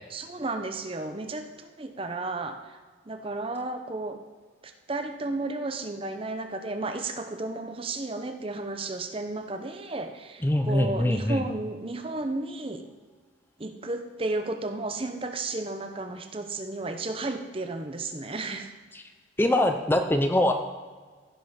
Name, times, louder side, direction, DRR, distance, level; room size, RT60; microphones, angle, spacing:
voice 1, 0.1-2.8 3.1-4.2 4.6-12.8 13.6-18.7, right 2 dB, 30° right, 7 dB, 0.7 m, -33 dB
voice 2, 10.4-11.5 18.9-19.0 19.4-20.5, left 1 dB, 10° left, 6 dB, 0.5 m, -23 dB
15.5 x 5.5 x 5.8 m, 1.4 s
head